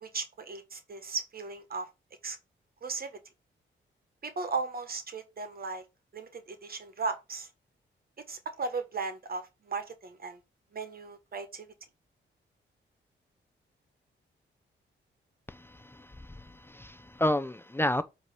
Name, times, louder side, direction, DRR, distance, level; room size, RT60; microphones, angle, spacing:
voice 1, 0.0-1.9 2.2-2.4 2.8-3.2 4.2-5.8 6.1-7.5 8.3-10.4 10.7-11.7, right 4 dB, 50° right, 1.3 m, -36 dB
voice 2, 15.5-16.1 16.7-18.0, left 1 dB, 10° left, 0.6 m, -30 dB
8.1 x 3.0 x 5.5 m
cardioid pair, 85°, 20 cm